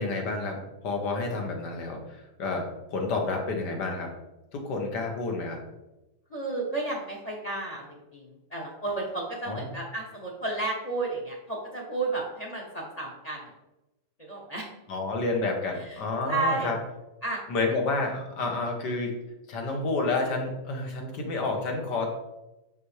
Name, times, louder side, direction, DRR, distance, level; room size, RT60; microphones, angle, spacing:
voice 1, 0.0-4.1 4.5-5.6 9.5-9.7 14.9-16.8 17.5-19.2 19.5-22.1, left 3 dB, 80° left, 2 dB, 1.7 m, -30 dB
voice 2, 6.3-13.5 14.2-14.7 15.9-16.0 16.2-16.7 17.2-17.4, right 3 dB, 30° left, -1 dB, 0.8 m, -32 dB
5.9 x 5.8 x 3.2 m, 0.95 s
omnidirectional pair, 1.8 m